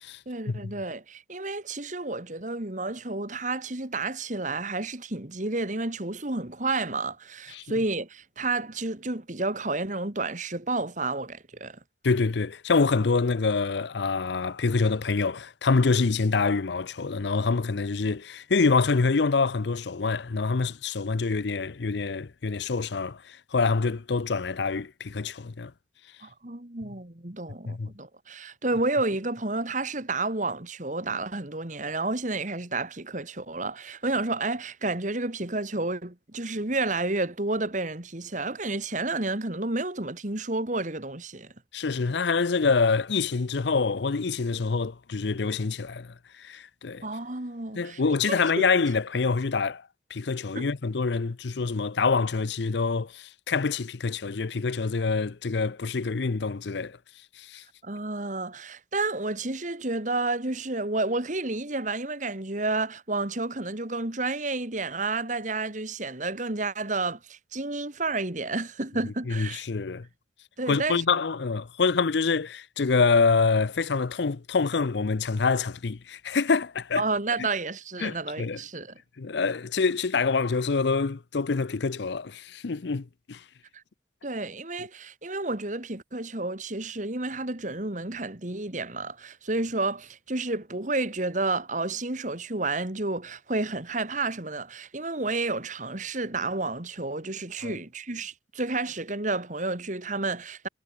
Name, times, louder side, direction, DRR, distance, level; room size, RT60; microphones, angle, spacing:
voice 1, 0.3-11.8 26.2-41.5 47.0-48.0 48.2-48.6 50.6-50.7 57.8-69.6 70.6-71.0 77.0-78.9 84.2-100.7, right 3 dB, 40° right, 2.0 m, -30 dB
voice 2, 12.0-25.7 27.7-27.9 41.7-47.1 47.7-49.8 50.1-57.0 57.4-57.6 69.3-70.1 70.7-77.0 77.4-77.5 78.0-78.6 79.2-83.4 97.6-97.8, left 4 dB, 70° left, 0.6 m, -26 dB
head